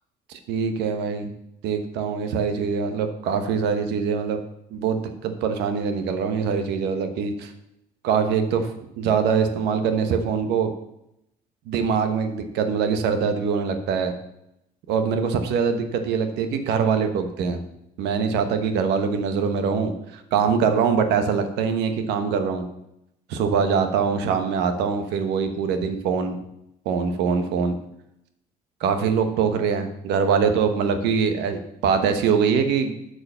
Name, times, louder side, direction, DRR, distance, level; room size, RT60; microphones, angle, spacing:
voice 1, 0.3-1.3 1.6-4.4 4.7-7.5 8.0-8.7 9.0-10.7 11.7-14.1 14.9-17.6 18.0-22.6 23.3-26.4 26.8-27.7 28.8-32.9, right 6 dB, 85° right, 8 dB, 1.1 m, -23 dB
8.6 x 4.9 x 6.6 m, 0.82 s
cardioid pair, 110°, 17 cm